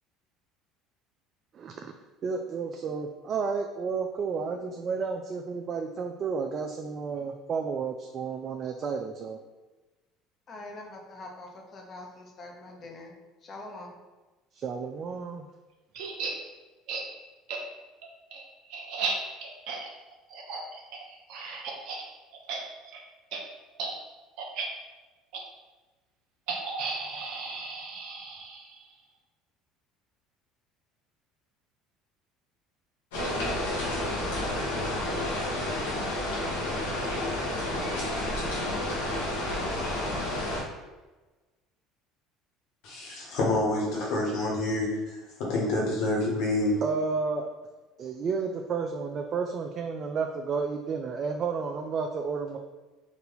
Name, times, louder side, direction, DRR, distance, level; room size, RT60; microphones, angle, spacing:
voice 1, 1.5-1.9 2.2-9.4 14.5-15.5 46.8-47.5 48.0-52.6, right 5 dB, 45° right, 4 dB, 0.4 m, -31 dB
voice 2, 10.5-13.2 13.4-13.9, left 2 dB, 45° left, 1 dB, 1.0 m, -44 dB
sound 1, 15.9-16.3 16.9-17.0 17.5-17.6 18.0-22.0 22.3-22.6 22.8-23.0 23.3-23.4 23.8-23.9 24.4-24.7 25.3-25.4 26.5-28.8, right 4 dB, 70° right, 0.7 m, -35 dB
sound 2, 33.1-40.6, left 1 dB, 85° left, 1.2 m, -30 dB
voice 3, 42.8-46.8, left 2 dB, 65° left, -3 dB, 1.5 m, -28 dB
4.0 x 2.6 x 4.1 m, 1.2 s
hypercardioid pair, 70°, 0 cm